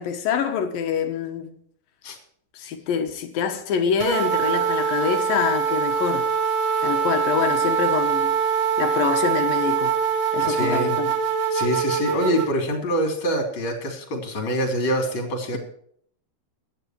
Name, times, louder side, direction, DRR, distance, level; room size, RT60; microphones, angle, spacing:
voice 1, 0.0-1.5 2.5-6.3 6.8-8.3 8.8-10.0 10.3-11.1, left 7 dB, 70° left, 3.1 m, -25 dB
sound 1, 4.0-12.5, right 6 dB, 55° right, 1.3 m, -23 dB
voice 2, 10.4-10.9 11.5-15.6, equal, 35° left, 4.1 m, -25 dB
16.5 x 11.5 x 4.6 m
omnidirectional pair, 4.4 m